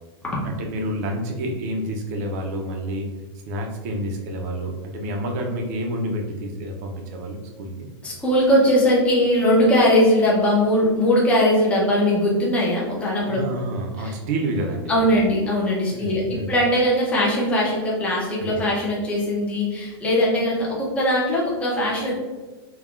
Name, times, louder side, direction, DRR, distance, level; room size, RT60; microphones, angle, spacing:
voice 1, 0.4-3.1 3.5-7.9 13.3-15.1 15.9-16.5, right 1 dB, 40° right, 2 dB, 0.6 m, -29 dB
voice 2, 8.0-13.4 14.0-14.1 14.9-22.2, left 1 dB, 10° left, -5 dB, 0.7 m, -20 dB
5.5 x 2.3 x 2.4 m, 1.3 s
supercardioid pair, 170°, 14 cm